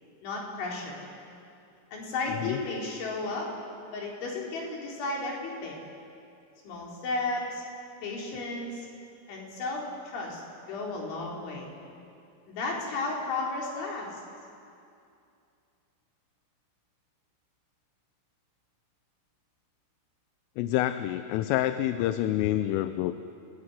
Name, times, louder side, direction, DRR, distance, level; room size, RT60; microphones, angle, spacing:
voice 1, 0.2-1.0 1.9-3.5 3.9-5.8 6.6-7.6 8.0-8.9 9.3-10.4 10.7-11.7 12.5-14.1, left 3 dB, 65° left, -2 dB, 6.4 m, -33 dB
voice 2, 20.6-23.2, left 13 dB, 80° left, 10 dB, 3.3 m, -27 dB
29.5 x 18.0 x 9.8 m, 2.5 s
omnidirectional pair, 5.9 m